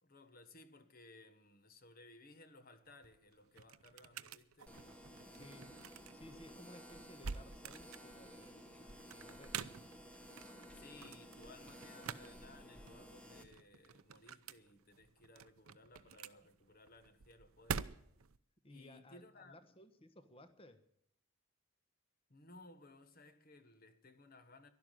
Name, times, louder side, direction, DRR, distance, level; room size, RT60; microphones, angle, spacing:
voice 1, 0.0-4.8 6.3-6.6 9.7-9.9 10.7-18.0 18.7-19.6 22.3-24.7, left 2 dB, 45° left, 1.4 m, -60 dB
sound 1, 2.8-18.4, right 6 dB, 80° right, 0.7 m, -49 dB
sound 2, 4.7-13.4, equal, 5° left, 1.4 m, -55 dB
voice 2, 5.3-5.8 6.1-9.6 18.6-20.8, left 1 dB, 25° left, 1.2 m, -58 dB
12.0 x 11.5 x 9.1 m
head